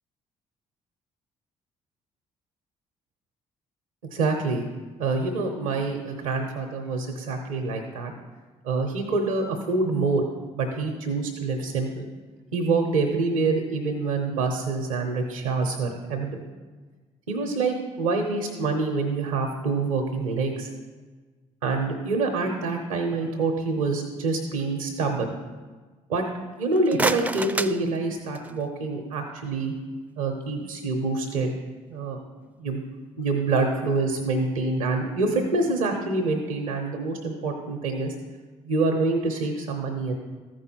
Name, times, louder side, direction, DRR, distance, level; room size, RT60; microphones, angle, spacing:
voice 1, 4.0-4.7 5.0-8.1 8.6-10.3 10.6-12.1 12.5-16.4 17.3-20.7 21.6-25.3 26.1-26.2 26.6-29.7 30.2-31.5 31.9-32.2 32.6-32.8 33.2-38.1 38.6-40.1, right 3 dB, 90° right, 3 dB, 0.8 m, -26 dB
sound 1, 26.6-28.7, right 2 dB, 10° right, 0.4 m, -30 dB
13.5 x 4.8 x 4.4 m, 1.3 s
hypercardioid pair, 50°, 17 cm